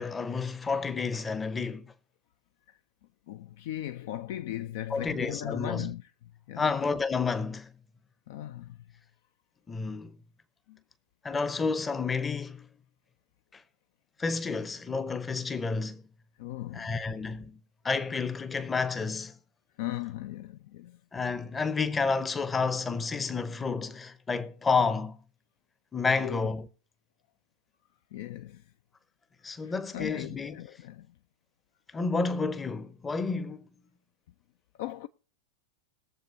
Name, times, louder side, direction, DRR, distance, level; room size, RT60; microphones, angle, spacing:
voice 1, 0.0-1.9 4.9-5.9 6.6-7.7 9.7-10.2 11.2-12.7 13.5-13.6 14.2-16.0 16.7-17.6 17.8-19.4 21.1-25.2 25.9-26.7 29.4-30.6 31.9-33.7, left 4 dB, 15° left, 0.7 m, -30 dB
voice 2, 3.3-6.0 6.5-6.7 8.3-8.8 10.7-10.8 16.4-16.9 19.8-21.0 26.2-26.4 28.1-28.6 29.6-31.1 34.8-35.1, left 13 dB, 50° left, 0.4 m, -38 dB
21.0 x 7.3 x 2.6 m
figure-of-eight pair, 90°, 0 cm